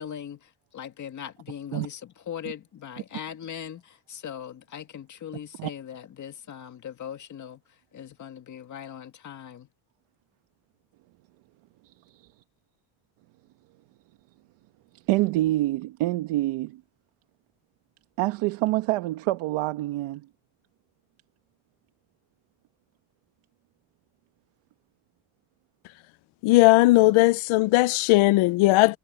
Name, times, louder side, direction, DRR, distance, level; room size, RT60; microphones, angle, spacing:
voice 1, 0.0-7.6 7.9-9.7, left 9 dB, 35° left, 2.0 m, -40 dB
voice 2, 15.1-16.8 18.2-20.3, right 17 dB, 80° right, 1.3 m, -26 dB
voice 3, 26.4-29.0, left 20 dB, 75° left, 0.8 m, -18 dB
cardioid pair, 160°, 49 cm